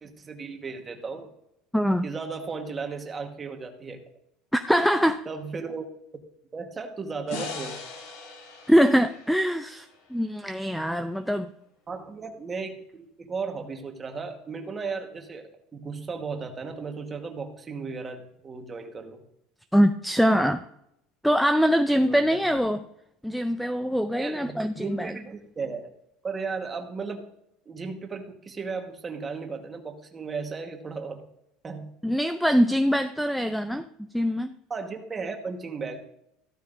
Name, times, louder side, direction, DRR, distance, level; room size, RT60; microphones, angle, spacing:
voice 1, 0.0-1.3 2.0-4.0 5.3-5.9 6.5-7.8 11.9-19.2 22.0-22.2 24.2-25.9 26.2-27.3 27.7-31.2 31.6-31.9 34.7-36.0, right 4 dB, 20° right, 4 dB, 1.3 m, -35 dB
voice 2, 1.7-2.1 4.5-5.2 8.7-9.9 10.1-11.5 19.7-20.6 21.2-22.8 23.2-25.1 32.0-33.9 34.1-34.5, equal, ahead, 10 dB, 0.4 m, -23 dB
sound 1, 7.3-10.5, left 3 dB, 85° left, 4.2 m, -40 dB
14.5 x 13.0 x 2.6 m, 0.80 s
cardioid pair, 160°, 0 cm